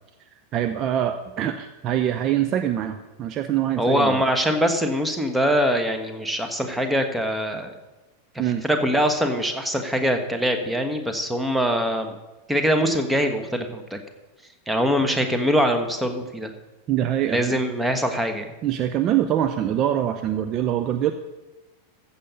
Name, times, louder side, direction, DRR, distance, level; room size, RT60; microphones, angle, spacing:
voice 1, 0.5-4.2 8.4-8.6 16.9-17.6 18.6-21.1, right 11 dB, 35° right, 8 dB, 0.7 m, -24 dB
voice 2, 3.8-7.8 8.6-12.1 12.5-14.0 14.7-16.5 17.3-18.5, equal, 5° right, 6 dB, 1.4 m, -23 dB
15.0 x 7.2 x 5.4 m, 1.1 s
figure-of-eight pair, 90°, 0 cm